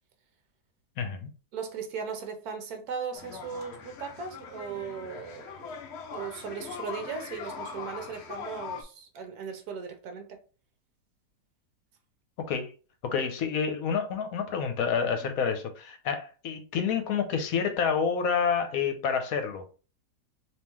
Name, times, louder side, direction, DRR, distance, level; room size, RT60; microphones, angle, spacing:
voice 1, 1.0-1.3 12.4-12.7 13.0-19.8, left 6 dB, 65° left, 1.0 m, -28 dB
voice 2, 1.5-5.7 6.1-10.4 15.2-15.3, right 6 dB, 70° right, 1.2 m, -38 dB
sound 1, 3.1-8.8, left 6 dB, 85° left, 0.5 m, -41 dB
3.6 x 2.8 x 3.0 m
omnidirectional pair, 1.8 m